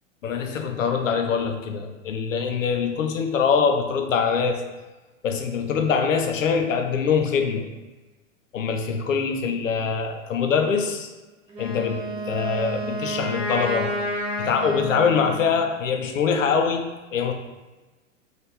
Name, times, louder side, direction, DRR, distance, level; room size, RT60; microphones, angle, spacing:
voice 1, 0.2-4.6 5.2-7.7 8.5-11.1 11.6-13.9 14.4-17.3, left 6 dB, 75° left, 4 dB, 0.5 m, -24 dB
Wind instrument woodwind instrument, 11.5-15.6, equal, 15° right, 0.5 m, -30 dB
3.0 x 2.3 x 3.4 m, 1.2 s
figure-of-eight pair, 95°, 39 cm